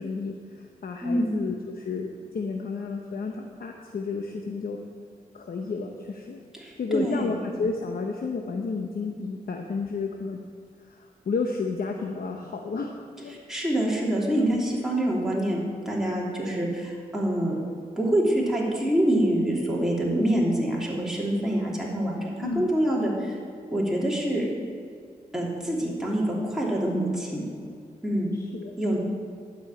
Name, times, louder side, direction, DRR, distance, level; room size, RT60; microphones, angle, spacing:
voice 1, 0.0-4.8 5.3-6.4 6.8-10.4 10.8-13.4 14.5-14.6 22.4-22.7 28.3-29.0, left 4 dB, 70° left, 2 dB, 0.9 m, -32 dB
voice 2, 1.0-1.3 6.6-7.3 13.5-15.6 15.8-17.5 18.0-23.4 23.7-24.4 25.3-27.4 28.0-28.3 28.8-29.0, right 1 dB, 5° right, -5 dB, 3.1 m, -26 dB
12.0 x 5.5 x 8.7 m, 2.3 s
cardioid pair, 55°, 16 cm